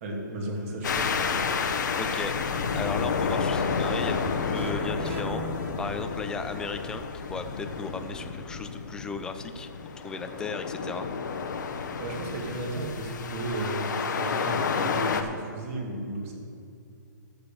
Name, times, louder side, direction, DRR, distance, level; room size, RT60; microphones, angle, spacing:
voice 1, 0.0-1.1 12.0-16.3, right 1 dB, 45° right, -1 dB, 2.5 m, -34 dB
sound 1, 0.8-15.2, left 5 dB, 65° left, 1.0 m, -30 dB
voice 2, 2.0-5.4 5.8-9.7 10.0-11.1, left 4 dB, 5° left, 8 dB, 0.4 m, -36 dB
sound 2, 4.5-6.5, right 3 dB, 15° right, 0.8 m, -40 dB
13.5 x 5.2 x 6.9 m, 2.5 s
hypercardioid pair, 150°, 11 cm